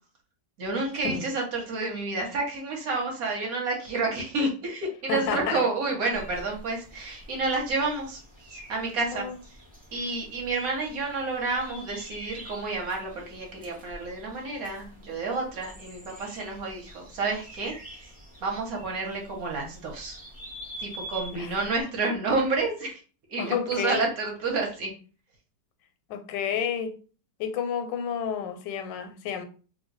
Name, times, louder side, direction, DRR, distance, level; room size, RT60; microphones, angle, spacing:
voice 1, 0.6-8.2 8.5-9.3 9.9-18.1 18.4-20.2 20.8-23.0 23.3-24.9, right 3 dB, 60° right, 1.2 m, -30 dB
voice 2, 5.1-5.6 9.1-9.4 21.3-21.5 23.4-24.0 26.1-26.9 27.4-29.5, left 7 dB, 85° left, 1.2 m, -30 dB
sound 1, 6.1-21.8, right 1 dB, 10° right, 0.3 m, -46 dB
2.9 x 2.2 x 3.8 m
omnidirectional pair, 1.9 m